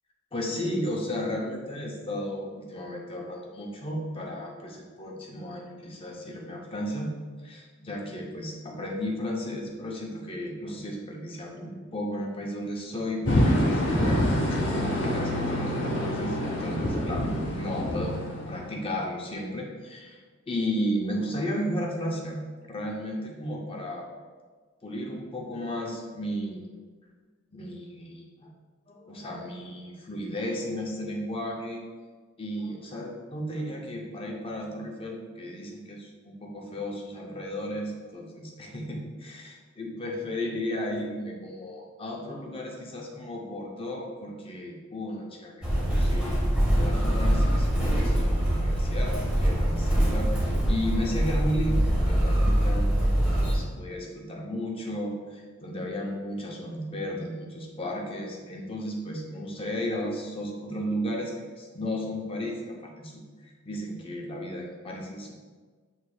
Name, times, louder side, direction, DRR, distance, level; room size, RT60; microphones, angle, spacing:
voice 1, 0.3-7.1 7.4-14.4 14.7-17.3 17.6-18.2 18.5-20.2 20.5-22.4 22.7-24.1 24.8-26.7 27.5-28.5 28.9-31.8 32.4-46.4 46.7-65.3, equal, 25° left, -1 dB, 0.5 m, -34 dB
sound 1, 13.3-18.9, equal, 55° left, 0.8 m, -26 dB
Motor vehicle (road), 45.6-53.5, right 1 dB, 5° right, 1.0 m, -24 dB
6.1 x 3.1 x 2.3 m, 1.5 s
head